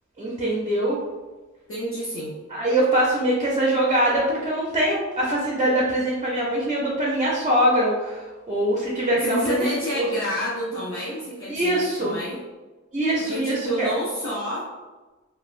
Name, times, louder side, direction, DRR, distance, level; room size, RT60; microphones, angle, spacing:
voice 1, 0.2-1.0 2.5-9.7 9.9-10.1 11.5-12.2 12.9-13.9, right 1 dB, 25° right, -5 dB, 0.5 m, -23 dB
voice 2, 1.7-2.3 9.2-12.4 13.3-14.7, equal, 45° left, -7 dB, 0.6 m, -29 dB
2.9 x 2.1 x 2.5 m, 1.2 s
wide cardioid pair, 55°, 31 cm